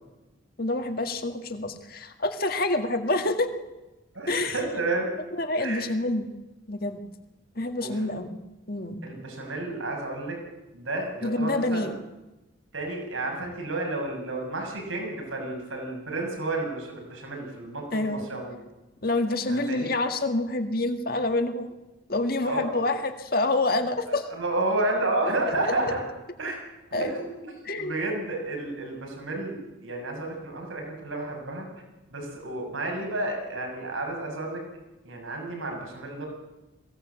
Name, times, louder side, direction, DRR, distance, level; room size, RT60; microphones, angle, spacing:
voice 1, 0.6-3.5 4.3-4.6 5.4-6.3 6.7-7.0 7.6-8.4 8.7-9.0 11.2-12.0 17.9-18.3 19.0-21.7 22.1-24.3 26.9-27.1 27.7-27.9, left 2 dB, 45° left, 7 dB, 1.8 m, -27 dB
voice 2, 4.1-5.1 5.6-5.8 7.8-7.9 9.0-10.4 10.7-11.9 12.7-18.6 19.5-19.9 22.4-22.6 24.1-26.0 26.4-26.6 27.0-31.7 32.1-34.6 35.0-36.3, right 2 dB, 90° right, 1 dB, 6.6 m, -31 dB
22.0 x 17.0 x 8.2 m, 1.0 s
head